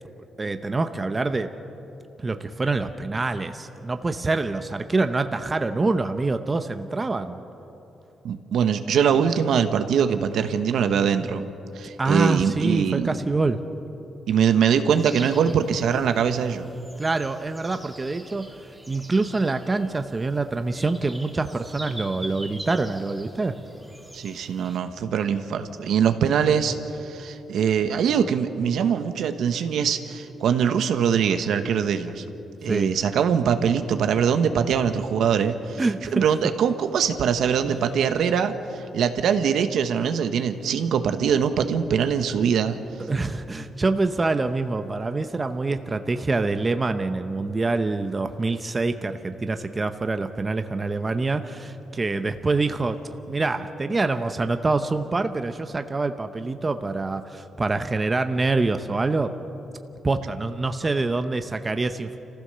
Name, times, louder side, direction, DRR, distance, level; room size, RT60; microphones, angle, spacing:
voice 1, 0.4-1.5 2.2-7.4 12.0-13.6 17.0-18.5 18.9-23.6 32.7-32.9 35.8-36.2 37.6-37.8 43.1-53.0 53.3-59.3 60.0-62.2, right 3 dB, 20° right, 8 dB, 0.7 m, -25 dB
voice 2, 8.2-11.5 11.7-13.1 14.3-16.7 24.1-32.2 32.6-35.8 36.1-42.8, right 7 dB, 70° right, 8 dB, 1.1 m, -22 dB
sound 1, 14.9-24.8, right 1 dB, 5° right, 1.8 m, -44 dB
29.0 x 15.0 x 6.8 m, 3.0 s
cardioid pair, 145°, 0 cm